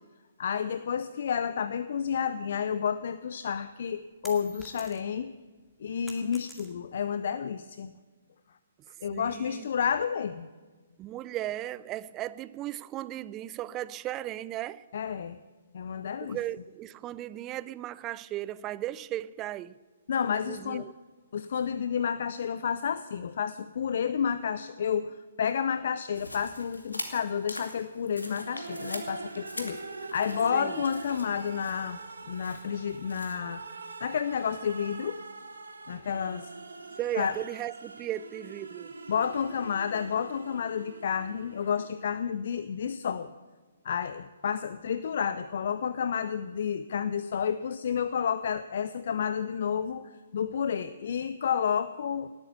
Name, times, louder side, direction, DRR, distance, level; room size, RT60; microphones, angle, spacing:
voice 1, 0.4-5.3 5.8-7.9 9.0-10.5 14.9-15.4 15.7-16.4 20.1-20.8 21.3-29.8 30.1-32.0 32.3-33.7 34.0-35.2 35.9-36.5 37.1-37.4 39.1-43.3 43.8-52.3, left 7 dB, 55° left, 0.6 m, -30 dB
sound 1, 3.4-5.3 5.6-7.1, right 1 dB, ahead, 2.1 m, -49 dB
voice 2, 9.1-9.7 11.0-14.9 16.2-19.8 20.5-20.9 30.5-30.8 37.0-38.9, right 13 dB, 25° right, 0.4 m, -36 dB
sound 2, 26.1-33.3, left 1 dB, 85° left, 2.4 m, -44 dB
sound 3, 28.3-42.2, right 3 dB, 75° right, 2.1 m, -44 dB
18.5 x 8.9 x 8.2 m
figure-of-eight pair, 130°, 0 cm